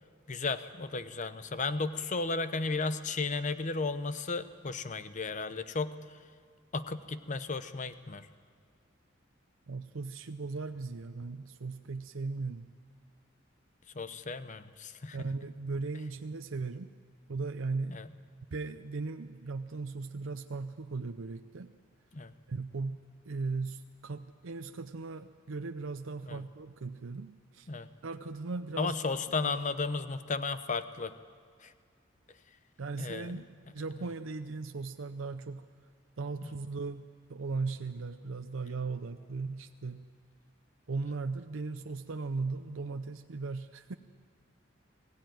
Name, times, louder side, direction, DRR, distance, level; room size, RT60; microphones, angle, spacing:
voice 1, 0.3-5.9 6.7-8.3 13.9-15.2 17.9-18.0 22.1-22.3 26.3-26.4 27.7-27.9 28.8-31.1 31.6-31.7 33.0-33.3, left 3 dB, 40° left, 12 dB, 0.8 m, -34 dB
voice 2, 9.7-12.7 15.1-16.9 17.3-18.0 18.5-21.7 22.5-27.7 28.0-29.6 32.8-35.7 36.2-37.0 37.3-40.1 40.9-43.9, right 3 dB, 85° right, 7 dB, 0.6 m, -38 dB
21.5 x 16.0 x 9.3 m, 2.1 s
head